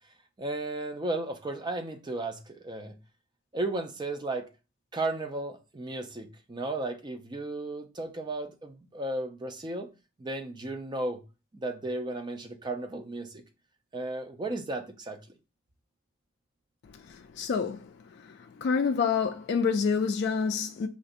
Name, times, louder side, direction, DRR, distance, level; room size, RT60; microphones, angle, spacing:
voice 1, 0.4-2.9 3.5-4.5 4.9-9.9 10.2-11.2 11.5-13.4 13.9-15.2, right 2 dB, 20° right, 0.4 m, -34 dB
voice 2, 17.1-17.9 18.2-20.9, left 5 dB, 50° left, 0.3 m, -28 dB
5.1 x 2.5 x 2.5 m
head